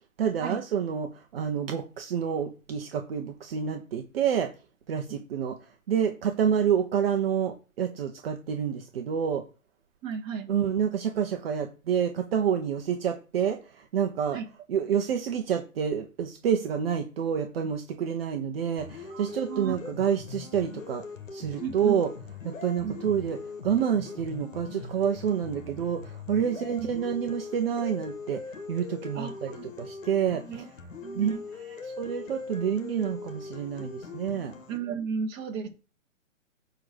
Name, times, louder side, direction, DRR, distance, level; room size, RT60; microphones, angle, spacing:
voice 1, 0.2-4.5 4.9-5.6 5.9-9.4 10.5-14.4 14.7-21.0 21.3-22.1 22.4-23.4 23.6-28.4 28.7-30.4 31.1-34.5, right 8 dB, 45° right, 4 dB, 1.1 m, -28 dB
voice 2, 10.0-10.5 14.3-14.5 19.1-19.8 21.6-22.0 22.8-23.0 26.8-26.9 29.1-29.7 30.5-30.6 31.0-31.4 34.7-35.7, right 6 dB, 25° right, 0 dB, 1.9 m, -34 dB
sound 1, 18.8-34.8, left 5 dB, 70° left, 2.0 m, -41 dB
9.6 x 4.0 x 6.4 m, 0.33 s
figure-of-eight pair, 130°, 40 cm